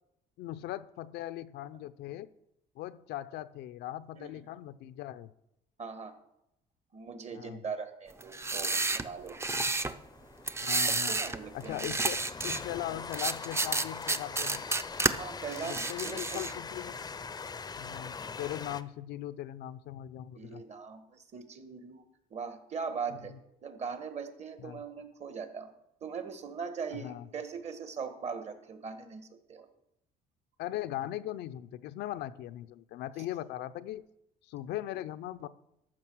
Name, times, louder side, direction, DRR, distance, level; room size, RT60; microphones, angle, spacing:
voice 1, 0.4-2.3 2.8-5.3 7.3-7.6 9.5-9.7 10.6-11.2 11.5-12.2 12.4-14.6 15.6-17.0 17.8-20.6 23.2-23.4 24.6-24.8 27.0-27.3 30.6-34.1 34.4-35.5, left 13 dB, 80° left, 13 dB, 0.6 m, -39 dB
voice 2, 5.8-6.1 6.9-9.4 10.9-11.9 15.2-16.4 20.3-22.0 22.3-23.3 23.6-25.7 26.0-29.7, right 5 dB, 40° right, 9 dB, 1.6 m, -40 dB
sound 1, 8.2-9.9 10.5-11.4 11.7-12.6 13.1-15.1 15.5-16.6, right 3 dB, 15° right, 0.6 m, -31 dB
Train, 9.1-18.8, left 5 dB, 25° left, 0.6 m, -43 dB
13.5 x 6.3 x 6.2 m, 0.83 s
cardioid pair, 110°, 17 cm